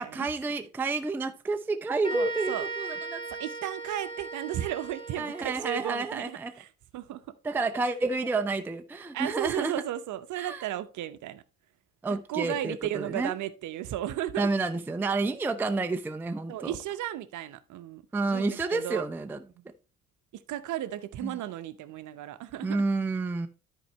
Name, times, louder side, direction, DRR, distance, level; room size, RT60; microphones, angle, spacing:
voice 1, 0.1-3.2 5.2-6.5 7.4-9.7 10.4-10.6 12.0-13.3 14.4-16.7 18.1-19.4 21.2-21.4 22.6-23.5, right 3 dB, 5° right, 0.6 m, -30 dB
sound 1, 2.0-5.7, right 4 dB, 10° left, 1.5 m, -38 dB
voice 2, 2.1-2.6 3.4-6.7 6.9-7.2 9.1-11.4 12.1-14.5 16.5-18.0 18.3-19.0 19.6-19.7 20.5-22.8, right 12 dB, 40° right, 0.9 m, -34 dB
13.0 x 4.6 x 3.1 m
figure-of-eight pair, 55°, 45 cm